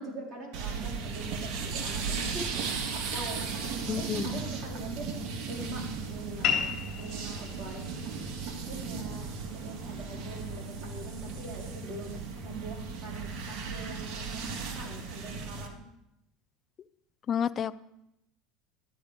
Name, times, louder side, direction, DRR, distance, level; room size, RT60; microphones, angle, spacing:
voice 1, 0.0-3.5 3.8-5.2 5.5-6.7 7.0-7.9 8.6-15.8, right 2 dB, 30° right, -3 dB, 4.5 m, -43 dB
sound 1, 0.5-15.7, right 5 dB, 55° right, 2.0 m, -36 dB
voice 2, 3.9-4.4 17.3-17.8, left 8 dB, 30° left, 14 dB, 0.5 m, -30 dB
sound 2, 6.4-11.5, left 8 dB, 45° left, 3.3 m, -37 dB
13.5 x 10.5 x 5.1 m, 0.83 s
supercardioid pair, 145°, 0 cm